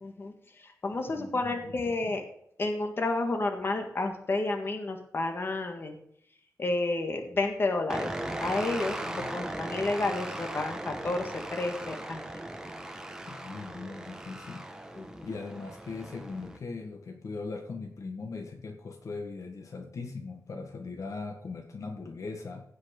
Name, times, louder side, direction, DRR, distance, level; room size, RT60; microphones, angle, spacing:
voice 1, 0.0-2.2 2.6-6.0 6.6-8.1 8.4-12.2 15.0-15.3, left 2 dB, 40° left, 4 dB, 1.7 m, -31 dB
voice 2, 1.1-1.7 2.0-2.1 9.0-9.3 13.3-14.6 15.2-22.6, left 4 dB, 60° left, 3 dB, 1.6 m, -40 dB
sound 1, 7.9-16.6, right 1 dB, 10° right, 1.1 m, -38 dB
16.0 x 5.7 x 5.2 m, 0.68 s
wide cardioid pair, 160°, 6 cm